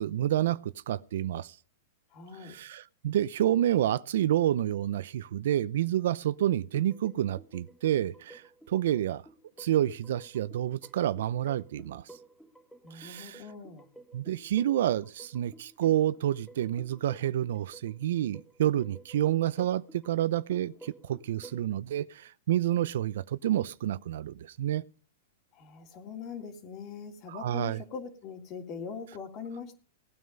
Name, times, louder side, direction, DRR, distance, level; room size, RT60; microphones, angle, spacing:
voice 1, 0.0-1.5 2.4-9.2 9.6-12.0 12.9-13.4 14.1-24.8 27.3-27.8, right 12 dB, 70° right, 0.6 m, -29 dB
voice 2, 2.1-2.6 12.8-13.9 25.5-29.8, left 6 dB, 40° left, 3.1 m, -42 dB
sound 1, 6.7-21.6, right 2 dB, 5° left, 1.2 m, -53 dB
17.5 x 9.4 x 5.4 m
hypercardioid pair, 130°, 0 cm